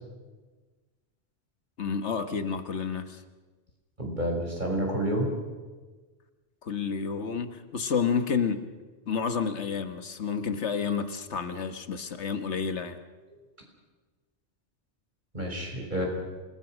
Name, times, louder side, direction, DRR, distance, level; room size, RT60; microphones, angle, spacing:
voice 1, 1.8-3.2 6.6-8.7 9.1-13.0, left 6 dB, 80° left, 9 dB, 1.6 m, -30 dB
voice 2, 4.0-5.3 15.3-16.0, right 1 dB, 45° right, 0 dB, 6.1 m, -29 dB
27.0 x 20.0 x 6.3 m, 1.3 s
omnidirectional pair, 1.2 m